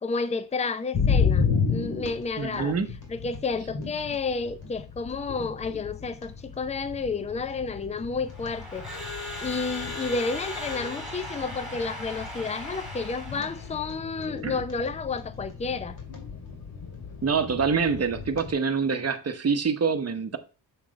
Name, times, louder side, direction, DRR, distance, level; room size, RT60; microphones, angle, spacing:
voice 1, 0.0-2.8 3.1-9.1 9.4-16.0, left 4 dB, 15° left, 0.5 m, -31 dB
sound 1, 0.9-18.5, left 6 dB, 55° left, 2.5 m, -33 dB
voice 2, 2.4-2.9 14.4-14.5 17.2-20.4, right 5 dB, 35° right, 1.0 m, -26 dB
Crowd / Alarm, 8.3-13.8, left 1 dB, ahead, 2.9 m, -38 dB
7.4 x 3.4 x 5.2 m
cardioid pair, 70°, 46 cm